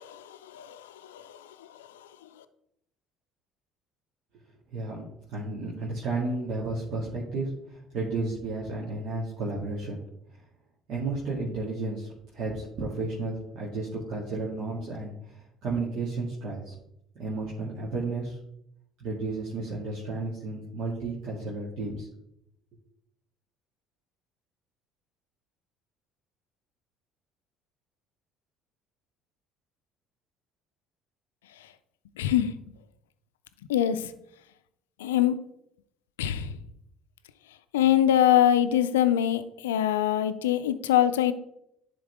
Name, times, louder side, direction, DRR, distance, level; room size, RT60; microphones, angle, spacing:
voice 1, 0.0-2.1 32.2-32.5 33.7-34.1 35.0-35.4 36.2-36.5 37.7-41.3, left 11 dB, 85° left, 12 dB, 0.4 m, -24 dB
voice 2, 4.7-10.0 10.9-12.1 12.3-16.7 17.2-18.4 19.0-22.1, right 3 dB, 60° right, -5 dB, 1.9 m, -32 dB
10.5 x 3.9 x 3.5 m, 0.78 s
hypercardioid pair, 65°, 0 cm